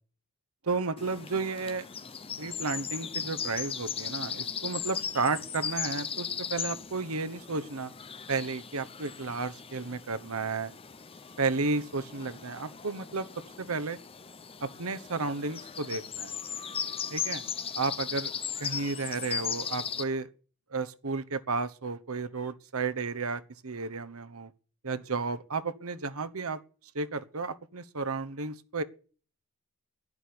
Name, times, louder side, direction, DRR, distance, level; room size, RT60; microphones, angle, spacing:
voice 1, 0.6-1.9 2.4-7.9 8.3-10.7 11.4-13.3 13.6-14.0 14.6-16.3 17.1-17.4 17.8-18.3 18.6-20.3 20.7-24.5 24.8-26.6 26.9-28.8, right 4 dB, 75° right, 1.1 m, -32 dB
sound 1, 1.0-20.0, left 7 dB, 25° left, 0.7 m, -38 dB
11.0 x 9.6 x 8.7 m
head